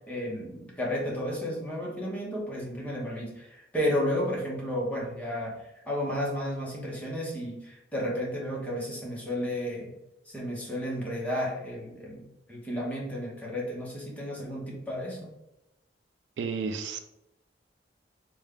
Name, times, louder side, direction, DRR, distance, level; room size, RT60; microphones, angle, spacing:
voice 1, 0.0-5.6 5.9-9.9 10.3-15.3, equal, 10° left, -4 dB, 0.8 m, -32 dB
voice 2, 16.4-17.0, right 5 dB, 65° right, 7 dB, 0.3 m, -32 dB
3.4 x 2.2 x 3.5 m, 0.89 s
head